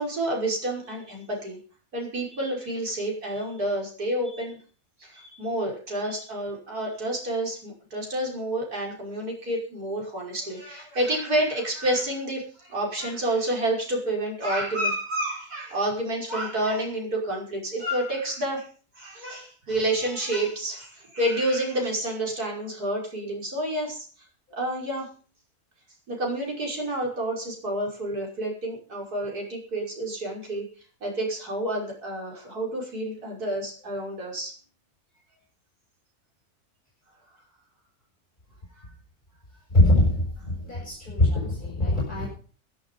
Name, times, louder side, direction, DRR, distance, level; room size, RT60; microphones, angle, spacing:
voice 1, 0.0-1.6 1.9-4.6 5.0-18.7 19.0-24.1 24.5-25.1 26.1-30.6 31.0-34.5, right 1 dB, 80° right, -1 dB, 6.2 m, -29 dB
voice 2, 39.7-40.1 40.5-42.3, left 1 dB, 30° left, -4 dB, 6.9 m, -22 dB
16.0 x 12.0 x 5.5 m, 0.41 s
omnidirectional pair, 1.6 m